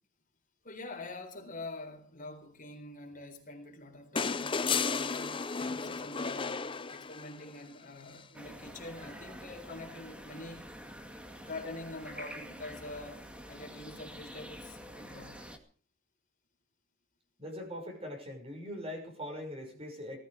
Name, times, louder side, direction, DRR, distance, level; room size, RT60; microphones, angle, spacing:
voice 1, 0.6-5.5 5.7-10.7 11.4-15.5, left 2 dB, 45° left, 4.1 m, -45 dB
sound 1, 4.2-7.5 9.0-9.1, left 5 dB, 25° left, 0.6 m, -33 dB
sound 2, 8.3-15.6, equal, 5° right, 2.2 m, -47 dB
voice 2, 17.4-20.2, left 1 dB, 30° right, 6.0 m, -41 dB
19.0 x 14.0 x 5.0 m
head